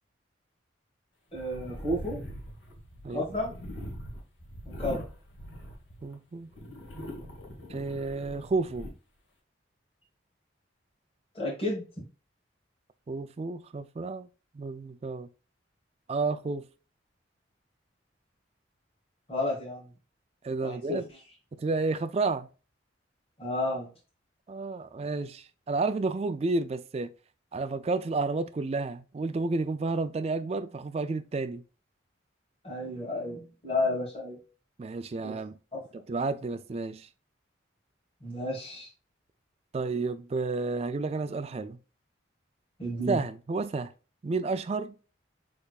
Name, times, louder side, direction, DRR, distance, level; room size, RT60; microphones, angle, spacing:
sound 1, 1.3-6.1 6.5-8.9, equal, 85° left, 1.7 m, -42 dB
voice 1, 1.3-2.2 3.1-3.5 4.6-5.0 11.3-12.0 19.3-19.9 20.6-21.2 23.4-23.9 32.6-34.4 35.2-35.3 35.7-35.8 38.2-38.9 42.8-43.2, left 1 dB, 30° left, 1.5 m, -32 dB
voice 2, 6.0-6.5 6.9-7.1 7.7-8.9 13.1-14.3 14.5-15.3 16.1-16.7 20.4-21.1 21.6-22.5 24.5-27.1 27.5-31.6 34.8-35.6 35.9-37.1 39.7-41.8 43.1-43.9 44.2-44.9, right 3 dB, 30° right, 0.3 m, -31 dB
6.3 x 3.3 x 2.4 m
head